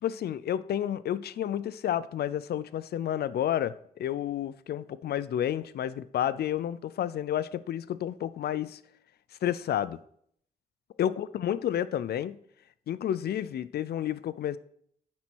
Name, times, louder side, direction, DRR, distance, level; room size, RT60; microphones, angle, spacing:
voice 1, 0.0-8.8 9.4-10.0 11.0-12.4 12.9-14.6, left 10 dB, 90° left, 0.5 m, -30 dB
9.8 x 4.2 x 6.0 m
cardioid pair, 85°, 16 cm